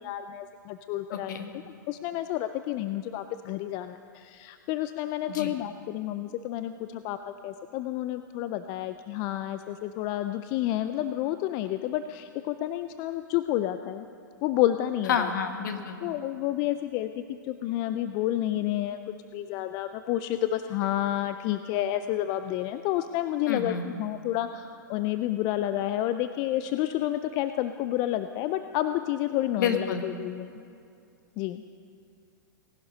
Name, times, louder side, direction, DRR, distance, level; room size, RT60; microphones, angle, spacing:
voice 1, 0.0-14.1 14.4-15.3 16.0-19.0 19.3-30.5 31.4-31.6, left 13 dB, 40° left, 10 dB, 0.5 m, -30 dB
voice 2, 1.1-1.4 5.3-5.5 15.1-16.0 23.5-23.8 29.6-30.0, left 7 dB, 65° left, 6 dB, 1.6 m, -29 dB
18.5 x 11.5 x 5.4 m, 2.4 s
hypercardioid pair, 110°, 11 cm